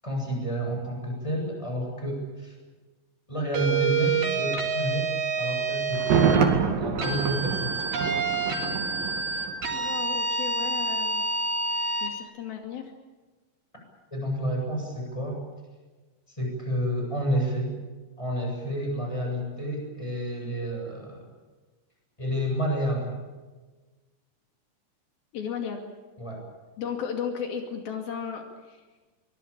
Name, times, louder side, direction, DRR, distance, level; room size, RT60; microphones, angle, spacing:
voice 1, 0.0-2.5 3.3-5.1 5.4-6.4 6.8-7.9 14.1-15.4 16.3-17.7 18.2-21.3 22.2-23.2 26.2-26.4, equal, 10° left, 1 dB, 7.8 m, -30 dB
sound 1, 3.5-6.4 7.0-12.1, right 4 dB, 90° right, 5.9 m, -28 dB
Thunder, 5.9-9.8 10.1-10.2, right 6 dB, 70° right, 3.9 m, -26 dB
voice 2, 9.7-11.3 12.0-12.9 25.3-25.8 26.8-28.8, left 7 dB, 80° left, 4 dB, 4.2 m, -34 dB
24.0 x 21.5 x 8.7 m, 1.3 s
omnidirectional pair, 4.2 m